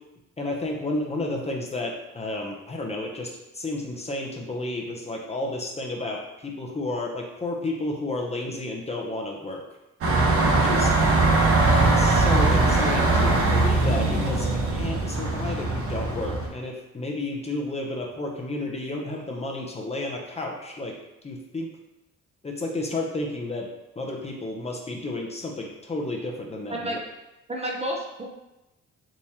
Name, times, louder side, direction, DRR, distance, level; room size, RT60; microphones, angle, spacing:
voice 1, 0.4-9.6 10.5-10.9 11.3-20.9 21.2-21.7 22.4-23.7 24.0-27.0, left 2 dB, 20° left, -1 dB, 0.6 m, -32 dB
sound 1, 10.0-16.5, right 2 dB, 50° right, 0.9 m, -21 dB
voice 2, 27.5-28.2, right 1 dB, 20° right, -1 dB, 0.5 m, -30 dB
3.6 x 2.9 x 2.8 m, 0.95 s
cardioid pair, 90°, 30 cm